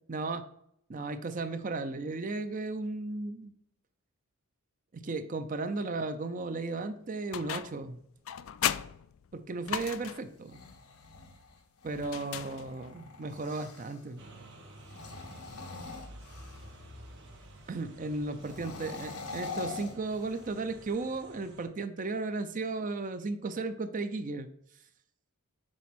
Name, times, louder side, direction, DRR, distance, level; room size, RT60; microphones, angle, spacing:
voice 1, 0.1-0.4 0.9-3.5 4.9-8.0 9.3-10.6 11.8-14.2 17.7-24.5, right 3 dB, 35° right, 10 dB, 0.5 m, -35 dB
sound 1, 7.3-7.9 8.3-10.4 12.0-13.0, left 11 dB, 60° left, 0.3 m, -36 dB
sound 2, 10.3-14.0 14.8-16.8 18.4-20.7, left 4 dB, 85° left, 1.0 m, -44 dB
sound 3, 14.2-21.7, right 1 dB, 50° right, 1.4 m, -51 dB
6.2 x 4.1 x 4.2 m, 0.73 s
head